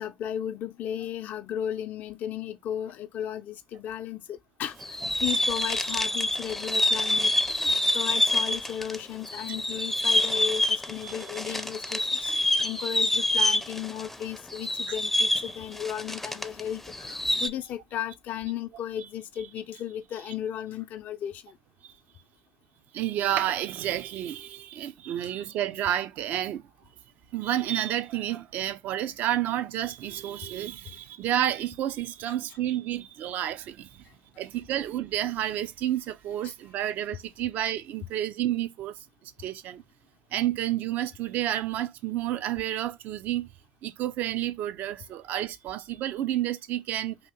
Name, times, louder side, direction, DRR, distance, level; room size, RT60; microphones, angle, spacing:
voice 1, 0.0-21.6 30.9-31.0 32.3-32.4 36.4-36.5, left 10 dB, 60° left, 0.5 m, -35 dB
sound 1, 4.8-9.0 9.2-16.6 16.9-17.5, left 1 dB, 5° left, 0.5 m, -27 dB
voice 2, 11.0-11.5 21.8-21.9 22.9-26.6 27.3-34.0 34.4-39.8 40.3-43.5 43.8-47.2, right 12 dB, 60° right, 0.4 m, -30 dB
2.9 x 2.7 x 3.6 m
hypercardioid pair, 60°, 3 cm